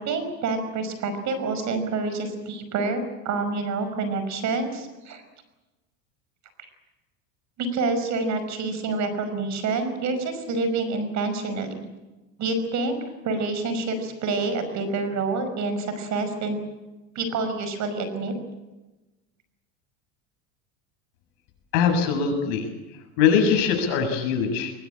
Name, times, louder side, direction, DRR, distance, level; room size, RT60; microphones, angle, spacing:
voice 1, 0.0-5.2 7.6-11.9 12.4-13.0 13.2-16.6 17.2-18.3, right 3 dB, 45° right, 9 dB, 5.6 m, -27 dB
voice 2, 21.7-22.7 23.2-24.7, left 6 dB, 65° left, 4 dB, 7.4 m, -22 dB
23.0 x 21.0 x 9.0 m, 1.1 s
supercardioid pair, 120°, 40 cm